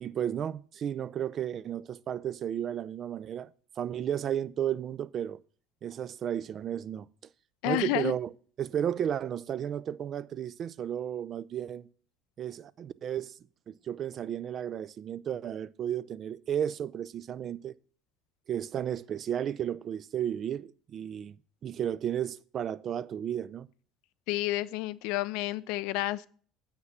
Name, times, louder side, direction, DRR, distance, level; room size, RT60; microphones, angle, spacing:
voice 1, 0.0-3.5 3.8-5.4 5.8-7.1 7.6-8.3 8.6-11.9 12.4-13.3 13.7-17.8 18.5-21.3 21.6-23.7, right 9 dB, 40° right, 0.4 m, -33 dB
voice 2, 7.6-8.1 24.3-26.3, left 17 dB, 60° left, 0.4 m, -30 dB
8.3 x 5.8 x 5.8 m
figure-of-eight pair, 65°, 0 cm